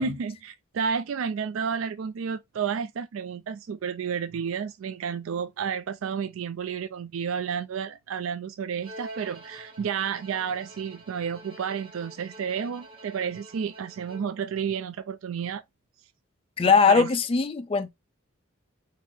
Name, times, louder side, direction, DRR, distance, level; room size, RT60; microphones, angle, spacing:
voice 1, 0.0-15.6 16.9-17.1, right 7 dB, 70° right, 0.4 m, -31 dB
Bowed string instrument, 8.8-14.5, right 1 dB, 25° right, 1.4 m, -47 dB
voice 2, 16.6-17.9, left 5 dB, 25° left, 0.4 m, -21 dB
4.5 x 2.8 x 3.4 m
head